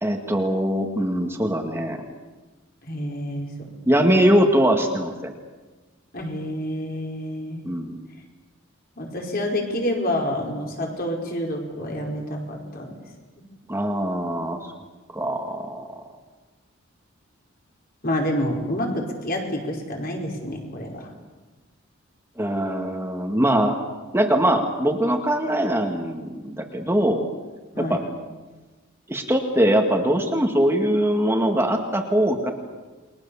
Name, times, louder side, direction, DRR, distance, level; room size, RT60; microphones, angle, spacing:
voice 1, 0.0-2.0 3.9-5.3 7.6-7.9 13.7-14.6 15.1-15.9 22.4-23.8 24.1-27.3 27.8-28.0 29.1-32.5, right 1 dB, 10° right, 3 dB, 2.0 m, -22 dB
voice 2, 2.8-3.7 4.0-4.1 6.1-7.6 9.0-12.9 18.0-21.1 27.7-28.0, left 1 dB, 45° left, 1 dB, 5.2 m, -28 dB
29.5 x 22.5 x 7.2 m, 1.3 s
head